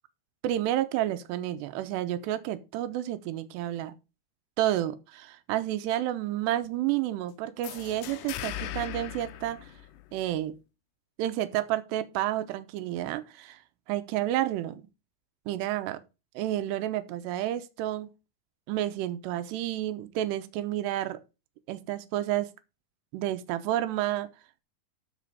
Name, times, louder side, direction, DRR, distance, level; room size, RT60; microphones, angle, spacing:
voice 1, 0.4-3.9 4.6-9.7 10.1-10.6 11.2-13.6 13.9-14.9 15.5-16.0 16.4-18.1 18.7-21.2 21.7-22.5 23.1-24.3, right 13 dB, 85° right, 2.9 m, -30 dB
sound 1, 7.6-10.4, left 12 dB, 90° left, 3.2 m, -39 dB
13.0 x 5.1 x 4.9 m
omnidirectional pair, 4.9 m